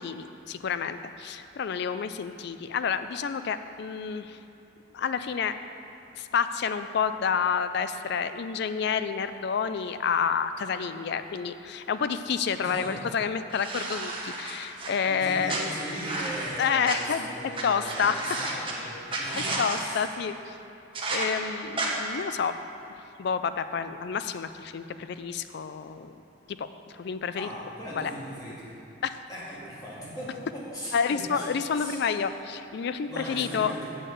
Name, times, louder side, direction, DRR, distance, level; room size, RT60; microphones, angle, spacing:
voice 1, 0.0-4.4 4.9-5.5 6.2-15.7 16.6-17.3 17.6-18.2 19.3-20.6 21.1-22.6 23.2-26.2 26.5-26.7 26.9-27.5 28.0-28.1 29.0-29.2 30.9-33.8, left 6 dB, 55° left, 11 dB, 0.3 m, -29 dB
voice 2, 12.6-13.0 15.1-20.1 27.3-28.7 29.3-31.5 31.7-32.0 33.0-33.9, equal, 20° left, -7 dB, 2.0 m, -39 dB
sound 1, 13.5-14.9 15.5-17.0 17.5-17.6 17.9-18.7 19.1-19.8 20.9-21.3 21.8-21.9, right 2 dB, 25° right, 1.0 m, -32 dB
6.6 x 6.4 x 7.7 m, 2.8 s
head